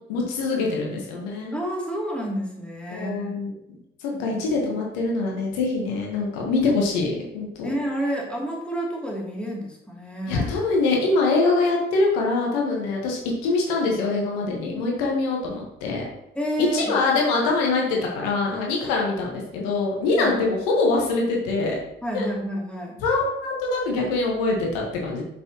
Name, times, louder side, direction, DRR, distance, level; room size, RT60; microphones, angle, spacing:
voice 1, 0.1-1.5 2.9-3.5 4.0-7.7 10.3-16.0 16.7-21.8 22.1-22.3 23.0-25.2, left 3 dB, 75° left, -1 dB, 1.3 m, -24 dB
voice 2, 1.5-3.4 7.6-10.5 16.3-16.9 20.2-20.3 22.0-23.0, equal, 5° left, -3 dB, 2.7 m, -29 dB
7.3 x 6.8 x 2.9 m, 0.84 s
figure-of-eight pair, 40°, 30 cm